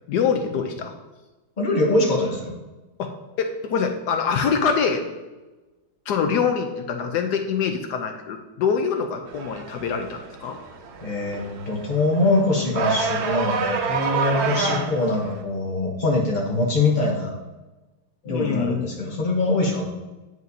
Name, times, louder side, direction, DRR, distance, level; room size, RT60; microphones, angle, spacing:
voice 1, 0.1-0.9 3.0-3.1 3.4-5.1 6.1-10.6 14.3-14.9 18.2-18.9, left 6 dB, 75° left, 5 dB, 1.0 m, -25 dB
voice 2, 1.6-2.6 11.0-17.3 18.2-19.9, left 2 dB, 50° left, -3 dB, 0.5 m, -23 dB
sound 1, 9.3-15.4, right 5 dB, 80° right, 1.5 m, -28 dB
9.3 x 5.0 x 2.7 m, 1.1 s
omnidirectional pair, 2.2 m